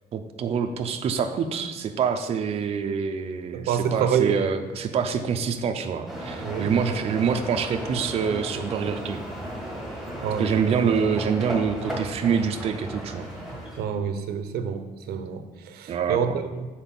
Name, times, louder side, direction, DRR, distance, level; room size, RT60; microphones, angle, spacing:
voice 1, 0.1-9.2 10.4-13.3 15.9-16.2, right 6 dB, 40° right, 6 dB, 0.5 m, -26 dB
voice 2, 3.5-4.4 6.4-6.8 10.2-10.8 13.8-16.7, right 7 dB, 85° right, 9 dB, 0.6 m, -27 dB
sound 1, 6.1-13.8, equal, ahead, 1.3 m, -35 dB
7.0 x 4.3 x 5.9 m, 1.3 s
cardioid pair, 170°, 16 cm